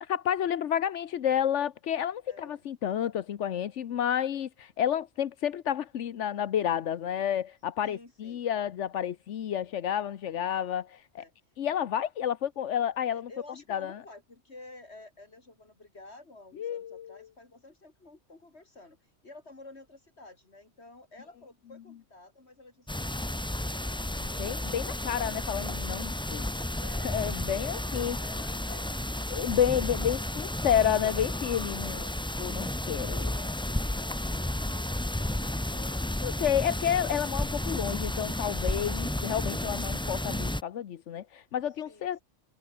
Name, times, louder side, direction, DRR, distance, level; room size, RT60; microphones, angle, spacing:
voice 1, 0.0-11.2 11.6-13.3 13.7-14.0 16.6-17.3 24.4-26.5 27.0-28.2 29.3-31.9 32.4-33.3 35.7-42.2, left 9 dB, 85° left, 1.2 m, -30 dB
voice 2, 2.3-2.7 7.8-8.4 11.2-11.3 13.0-19.0 19.2-24.3 26.8-29.2 31.8-32.2 32.9-35.4 41.8-42.1, left 2 dB, 65° left, 3.8 m, -51 dB
sound 1, 22.9-40.6, left 1 dB, 5° left, 0.4 m, -32 dB
omnidirectional pair, 1.2 m